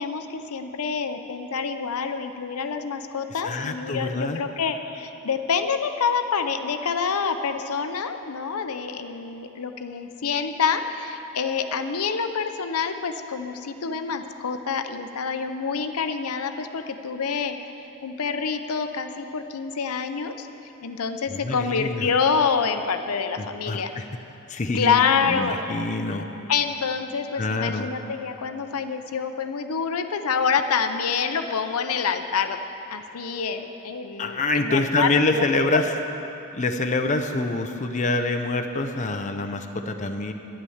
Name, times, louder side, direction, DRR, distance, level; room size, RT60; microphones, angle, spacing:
voice 1, 0.0-17.6 18.0-20.5 20.8-23.9 24.7-25.8 26.5-32.6 32.9-35.5 35.7-35.8, left 6 dB, 80° left, 8 dB, 0.7 m, -27 dB
voice 2, 3.4-4.4 21.3-22.1 23.4-24.0 24.5-26.3 27.4-27.9 34.2-35.9 36.5-40.3, left 2 dB, 35° left, 5 dB, 0.6 m, -26 dB
11.0 x 9.9 x 7.1 m, 2.9 s
head